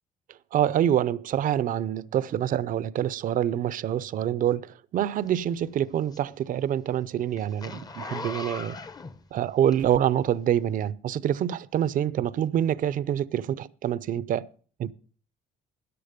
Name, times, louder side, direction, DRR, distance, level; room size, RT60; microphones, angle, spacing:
voice 1, 0.5-8.8 9.3-14.5 14.8-14.9, right 10 dB, 55° right, 0.6 m, -26 dB
Zipper (clothing), 5.3-10.2 10.8-10.9, left 3 dB, 25° left, 0.8 m, -40 dB
13.5 x 10.0 x 5.1 m
cardioid pair, 110°, 17 cm